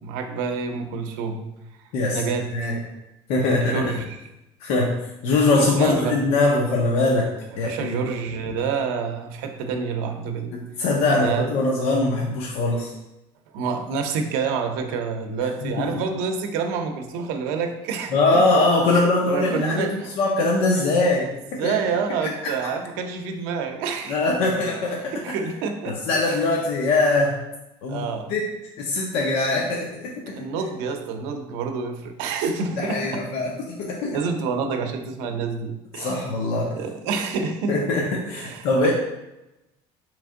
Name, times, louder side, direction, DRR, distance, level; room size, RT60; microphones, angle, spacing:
voice 1, 0.0-1.5 2.1-2.7 3.4-4.2 5.5-6.2 7.5-10.6 11.1-11.5 13.5-18.7 18.9-20.1 21.5-24.2 25.1-26.4 27.9-28.3 30.3-33.2 34.1-36.2 36.7-37.8 38.3-38.9, right 5 dB, 80° right, 5 dB, 0.6 m, -28 dB
voice 2, 2.5-2.8 3.3-3.9 4.6-4.9 5.2-7.3 7.6-8.1 10.5-12.9 15.6-15.9 18.1-21.7 24.1-25.4 25.8-27.3 27.8-28.5 28.8-30.3 32.8-34.2 35.9-36.7 37.7-38.9, left 2 dB, 55° left, -2 dB, 0.6 m, -22 dB
4.2 x 3.2 x 3.6 m, 0.94 s
cardioid pair, 175°, 11 cm